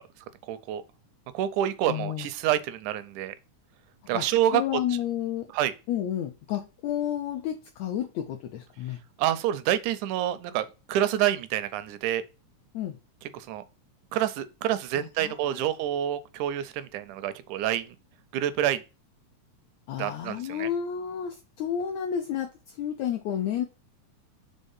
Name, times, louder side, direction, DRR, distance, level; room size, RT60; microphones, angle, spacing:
voice 1, 0.5-0.8 1.3-3.3 4.1-4.6 5.5-5.7 9.2-12.2 13.3-13.6 14.1-18.0 18.3-18.8 20.0-20.7, right 11 dB, 80° right, 1.9 m, -27 dB
voice 2, 1.9-2.3 4.1-4.2 4.5-5.5 5.9-9.0 12.7-13.0 14.9-15.6 19.9-23.7, left 9 dB, 75° left, 1.7 m, -31 dB
5.3 x 3.5 x 5.4 m
omnidirectional pair, 3.6 m